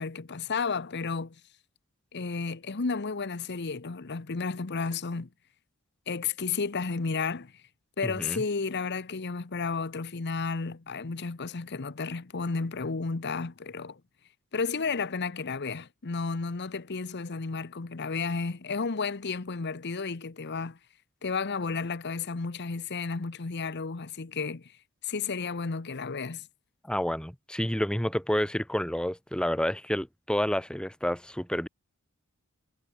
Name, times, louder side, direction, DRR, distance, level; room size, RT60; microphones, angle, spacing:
voice 1, 0.0-1.4 2.1-5.3 6.1-7.5 8.0-14.0 14.5-20.8 21.2-24.7 25.0-26.5, left 4 dB, 50° left, 0.9 m, -32 dB
voice 2, 8.0-8.4 26.8-31.7, equal, 5° left, 1.0 m, -29 dB
head